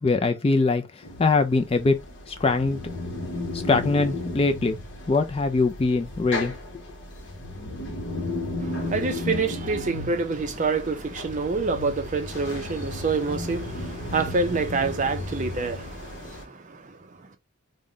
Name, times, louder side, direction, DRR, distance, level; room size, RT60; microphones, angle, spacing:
voice 1, 0.0-1.9 2.3-2.8 3.5-4.8 5.1-6.5, left 3 dB, 25° left, 0.3 m, -22 dB
sound 1, 1.0-16.4, left 2 dB, 55° left, 1.0 m, -34 dB
voice 2, 8.6-17.0, right 4 dB, 35° right, 0.5 m, -27 dB
3.7 x 2.1 x 3.5 m
head